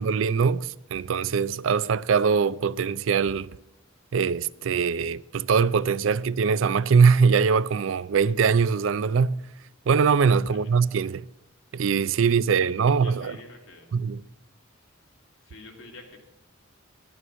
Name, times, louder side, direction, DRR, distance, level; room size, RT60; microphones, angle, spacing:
voice 1, 0.0-3.6 4.1-9.4 9.9-11.2 11.7-13.4 13.9-14.2, right 5 dB, 70° right, 0.4 m, -22 dB
voice 2, 12.5-14.0 15.4-16.2, left 3 dB, 75° left, 2.7 m, -47 dB
11.0 x 11.0 x 6.3 m
head